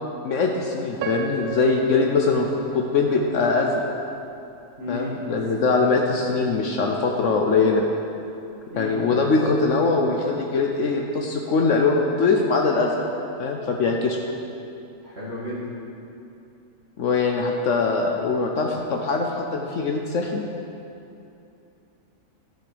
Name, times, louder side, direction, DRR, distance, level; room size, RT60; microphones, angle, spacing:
voice 1, 0.2-2.5 2.7-3.8 4.9-7.8 8.8-13.0 13.4-14.2 17.0-20.4, left 4 dB, 65° left, 1 dB, 1.1 m, -22 dB
Piano, 1.0-4.0 4.6-4.7 5.3-5.6, right 6 dB, 85° right, 1.0 m, -36 dB
voice 2, 4.8-5.2 8.7-9.0 15.0-15.6, left 1 dB, 50° right, -9 dB, 2.0 m, -33 dB
13.5 x 6.1 x 5.0 m, 2.7 s
omnidirectional pair, 1.4 m